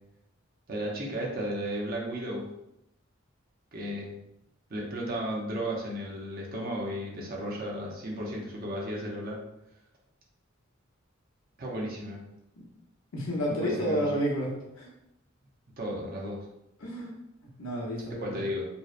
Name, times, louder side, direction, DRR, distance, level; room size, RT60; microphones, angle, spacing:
voice 1, 0.7-2.4 3.7-4.2 4.7-9.4 11.6-12.2 13.5-14.1 15.8-16.4 18.2-18.7, equal, 45° right, -2 dB, 0.6 m, -34 dB
voice 2, 13.1-14.9 16.8-17.1 17.6-18.5, equal, 85° left, -3 dB, 0.6 m, -30 dB
2.7 x 2.0 x 2.4 m, 0.83 s
head